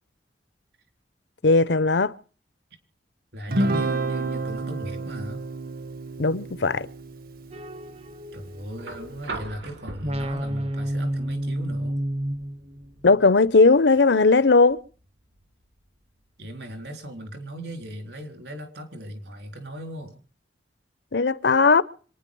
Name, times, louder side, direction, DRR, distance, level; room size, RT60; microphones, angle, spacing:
voice 1, 1.4-2.1 6.2-6.9 13.0-14.8 21.1-21.8, left 3 dB, 75° left, 0.8 m, -18 dB
voice 2, 3.3-5.4 8.3-12.0 16.4-20.2, equal, 70° right, 3.8 m, -37 dB
Guitar, 3.5-8.1, right 2 dB, 50° right, 1.1 m, -29 dB
sound 1, 7.5-9.6 10.0-13.2, right 1 dB, 35° right, 0.8 m, -31 dB
sound 2, 8.8-16.8 18.2-18.3, right 3 dB, 85° right, 3.1 m, -43 dB
26.5 x 10.0 x 5.4 m
head